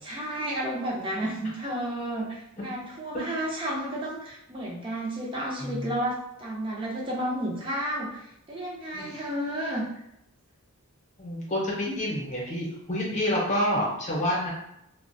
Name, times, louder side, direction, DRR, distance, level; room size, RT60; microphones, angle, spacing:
voice 1, 0.0-9.9, right 1 dB, 25° right, -4 dB, 0.4 m, -32 dB
voice 2, 5.6-5.9 8.9-9.2 11.2-14.5, equal, 35° left, -4 dB, 0.7 m, -28 dB
2.3 x 2.1 x 2.5 m, 0.80 s
head